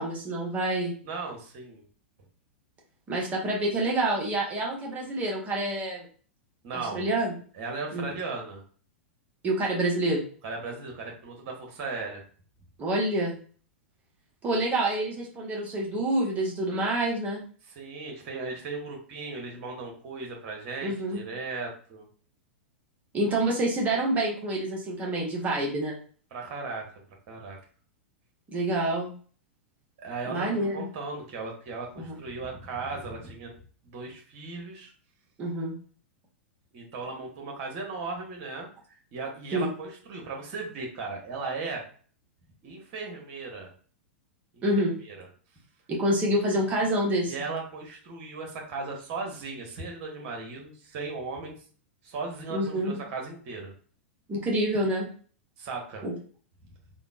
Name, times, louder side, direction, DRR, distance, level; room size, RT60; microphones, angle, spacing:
voice 1, 0.0-0.9 3.1-6.1 6.7-7.3 7.9-8.1 9.4-10.3 12.8-13.4 14.4-17.4 20.8-21.2 23.1-26.0 28.5-29.1 30.3-30.9 32.0-32.1 35.4-35.7 39.5-39.7 44.6-44.9 45.9-47.3 52.5-53.0 54.3-55.1 56.0-56.1, right 1 dB, 20° right, -2 dB, 1.0 m, -27 dB
voice 2, 1.0-1.8 6.6-7.1 7.5-8.6 10.4-12.2 17.7-22.1 26.3-26.9 27.3-27.6 30.0-33.5 33.8-34.9 36.7-38.7 39.1-41.8 42.6-43.7 44.5-44.6 45.1-45.3 47.3-51.6 52.0-53.7 55.6-56.0, right 3 dB, 40° right, 1 dB, 1.1 m, -37 dB
3.5 x 2.1 x 2.5 m, 0.43 s
figure-of-eight pair, 95°, 7 cm